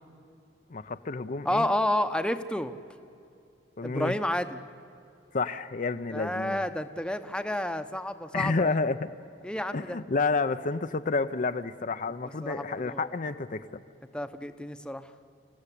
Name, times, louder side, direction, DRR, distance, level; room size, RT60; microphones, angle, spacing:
voice 1, 0.7-1.7 3.8-4.1 5.3-6.6 8.3-9.1 9.7-13.6, left 3 dB, 45° left, 9 dB, 0.6 m, -29 dB
voice 2, 1.4-2.7 3.8-4.6 6.1-8.7 9.4-10.0 12.4-13.1 14.1-15.1, left 1 dB, 5° left, 9 dB, 0.9 m, -30 dB
28.5 x 15.5 x 10.0 m, 2.5 s
head